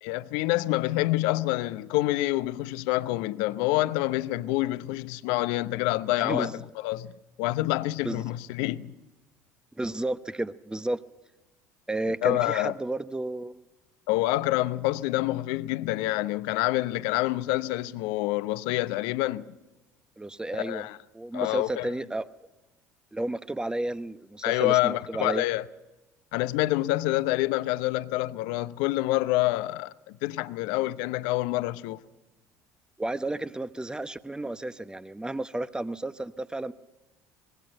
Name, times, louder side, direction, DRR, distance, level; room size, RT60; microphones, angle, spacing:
voice 1, 0.0-6.5 6.8-7.1 7.4-8.9 12.2-12.7 14.1-19.4 20.5-21.0 21.3-21.9 24.4-25.6 26.3-32.0, left 17 dB, 65° left, 0.8 m, -27 dB
voice 2, 6.2-6.6 8.0-8.2 9.8-11.0 11.9-13.6 20.2-20.9 21.1-22.3 23.1-25.4 33.0-36.7, right 2 dB, 10° right, 1.0 m, -32 dB
25.0 x 21.0 x 5.5 m
hypercardioid pair, 60°, 8 cm